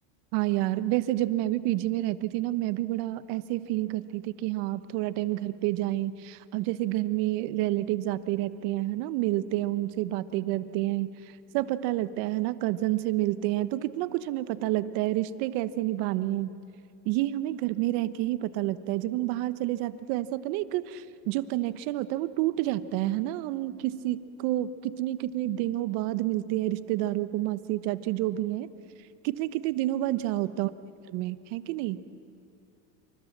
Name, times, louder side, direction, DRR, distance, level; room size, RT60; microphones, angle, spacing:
voice 1, 0.3-11.1 11.5-16.5 17.0-28.7 29.2-30.7 31.1-32.0, right 15 dB, 60° right, 14 dB, 1.1 m, -29 dB
26.5 x 25.0 x 7.4 m, 2.5 s
supercardioid pair, 140°, 43 cm